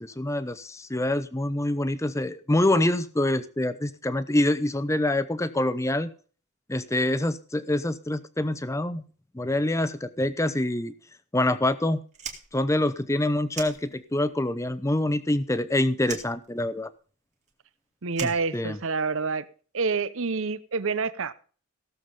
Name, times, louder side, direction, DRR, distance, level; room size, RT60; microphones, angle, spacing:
voice 1, 0.0-6.1 6.7-9.0 9.3-10.9 11.3-12.0 12.5-16.9 18.2-18.8, left 1 dB, 15° left, 0.6 m, -26 dB
Fire, 12.1-14.4 14.7-15.7 16.0-19.2, right 6 dB, 30° right, 2.2 m, -41 dB
voice 2, 18.0-19.5 19.7-21.3, right 4 dB, 65° right, 0.7 m, -27 dB
16.5 x 7.2 x 5.4 m
head